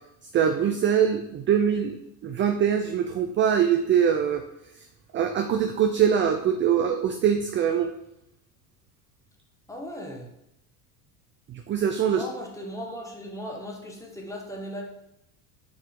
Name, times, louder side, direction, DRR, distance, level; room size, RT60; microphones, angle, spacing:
voice 1, 0.3-2.0 2.2-4.4 5.1-7.9 11.5-12.2, right 8 dB, 25° right, 5 dB, 0.4 m, -23 dB
voice 2, 9.7-10.3 12.1-14.8, equal, 5° left, -1 dB, 1.5 m, -37 dB
5.5 x 4.7 x 3.8 m, 0.80 s
hypercardioid pair, 90°, 47 cm